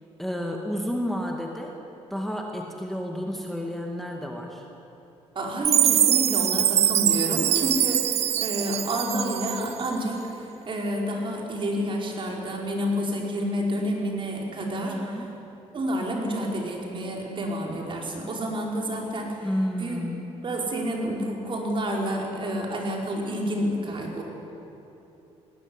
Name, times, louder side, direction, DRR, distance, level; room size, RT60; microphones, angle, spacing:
voice 1, 0.2-1.8 2.1-4.7 14.8-15.3 19.4-20.2, equal, ahead, 1 dB, 2.2 m, -31 dB
voice 2, 5.4-15.0 15.7-19.5 19.8-20.0 20.4-24.2, equal, 45° right, -1 dB, 5.4 m, -29 dB
Chime, 5.6-9.9, right 11 dB, 60° right, 0.5 m, -23 dB
19.5 x 18.0 x 9.9 m, 3.0 s
cardioid pair, 95°, 12 cm